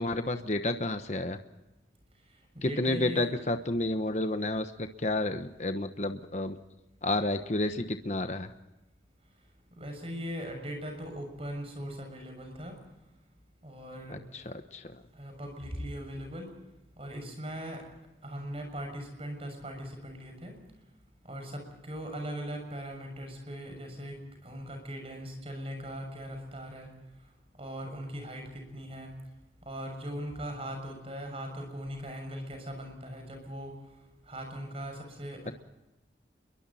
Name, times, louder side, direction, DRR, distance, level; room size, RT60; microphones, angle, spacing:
voice 1, 0.0-1.4 2.6-6.6 7.0-8.5 14.1-14.8, left 2 dB, 40° left, 8 dB, 1.1 m, -30 dB
voice 2, 2.5-3.3 9.7-12.8 13.6-14.2 15.1-16.6 17.0-17.8 18.2-20.5 21.2-26.9 27.6-29.1 29.6-33.8 34.2-35.5, equal, 35° right, 4 dB, 6.7 m, -40 dB
29.5 x 23.0 x 4.3 m, 1.0 s
head